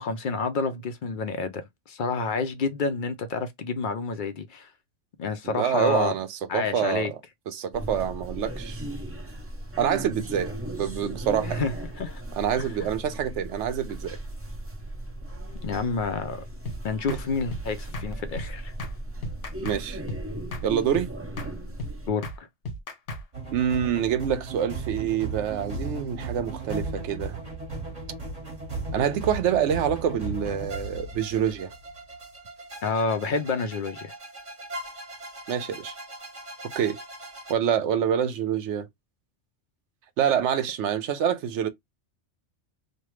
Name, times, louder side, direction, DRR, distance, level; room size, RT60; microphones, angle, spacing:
voice 1, 0.0-1.6 1.9-4.7 5.2-6.1 6.5-7.1 11.4-11.7 12.0-12.2 12.6-12.7 15.6-16.4 16.8-18.7 22.1-22.5 32.8-34.1, left 4 dB, 60° left, 0.6 m, -29 dB
voice 2, 5.4-7.2 7.5-8.8 9.8-11.6 12.3-14.2 17.1-17.2 19.6-20.0 20.6-21.1 23.5-27.4 28.9-31.7 35.5-35.9 36.7-37.0 37.5-38.9 40.2-41.7, right 9 dB, 75° right, 0.9 m, -26 dB
sound 1, 7.7-22.1, right 1 dB, 15° right, 0.5 m, -37 dB
sound 2, 16.7-16.8 17.1-17.2 17.5-17.7 17.9-18.1 18.4-18.5 18.8-19.0 19.2-19.8 20.1-20.2 20.5-20.7 20.9-21.1 21.4-21.5 21.8-21.9 22.2-22.4 22.7-23.2, left 1 dB, 80° left, 1.1 m, -34 dB
Drums and Strings dramatic intro, 23.3-37.5, right 3 dB, 35° right, 1.4 m, -37 dB
3.2 x 2.2 x 3.1 m
omnidirectional pair, 1.2 m